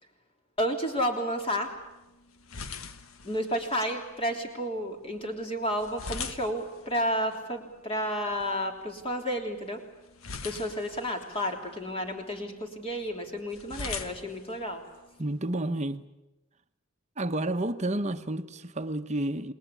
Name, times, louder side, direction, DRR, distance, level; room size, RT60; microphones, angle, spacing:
voice 1, 0.6-1.7 3.2-9.8 10.4-14.8, equal, 25° left, 3.4 m, -31 dB
sound 1, 1.4-15.4, left 5 dB, 85° left, 1.3 m, -44 dB
voice 2, 15.2-16.0 17.2-19.5, right 1 dB, 35° right, 1.0 m, -30 dB
28.0 x 20.5 x 8.5 m
head